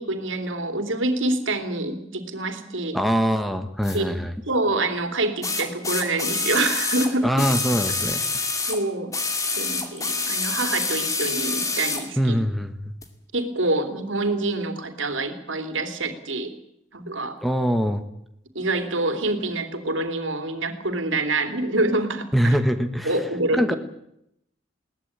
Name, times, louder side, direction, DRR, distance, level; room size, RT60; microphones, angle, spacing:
voice 1, 0.0-3.0 3.9-4.1 4.5-7.3 8.7-9.1 9.6-12.4 13.3-16.5 16.9-17.4 18.5-22.6 23.0-23.8, right 2 dB, 85° right, 8 dB, 3.1 m, -26 dB
voice 2, 2.9-4.3 7.2-8.2 12.2-13.0 17.4-18.0 22.3-23.2 23.5-23.7, equal, ahead, 8 dB, 1.3 m, -23 dB
sound 1, 3.8-4.0 5.4-8.8 9.1-12.1 13.0-13.1, left 3 dB, 15° left, 2.4 m, -27 dB
21.5 x 18.5 x 8.8 m, 0.79 s
head